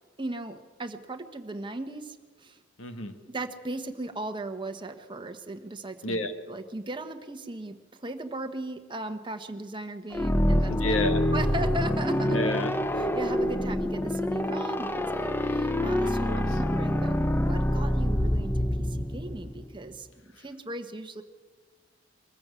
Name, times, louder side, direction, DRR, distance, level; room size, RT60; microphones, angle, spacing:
voice 1, 0.2-2.6 3.3-6.2 6.5-11.0 11.3-12.4 13.1-18.5 18.8-21.2, right 2 dB, 25° right, 6 dB, 1.2 m, -37 dB
voice 2, 2.8-3.2 6.0-6.3 10.7-11.3 12.3-12.8 16.0-16.6, left 1 dB, 85° left, 7 dB, 1.7 m, -31 dB
sound 1, 10.1-19.8, left 1 dB, 10° left, 0.7 m, -26 dB
23.0 x 14.0 x 8.3 m, 1.4 s
head